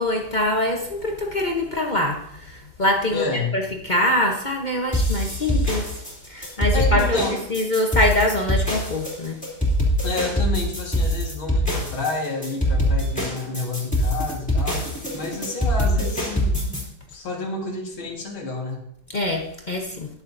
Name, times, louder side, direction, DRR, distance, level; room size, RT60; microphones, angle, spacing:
voice 1, 0.0-3.2 3.5-6.0 6.3-7.2 7.5-9.4 19.1-20.1, left 1 dB, 50° left, 1 dB, 0.5 m, -24 dB
voice 2, 3.1-3.5 6.4-7.4 10.0-14.8 15.1-16.7 17.1-18.8, left 3 dB, 65° left, 0 dB, 2.6 m, -29 dB
sound 1, 4.9-16.8, equal, 5° left, 2.7 m, -23 dB
21.5 x 7.2 x 2.7 m, 0.73 s
omnidirectional pair, 2.4 m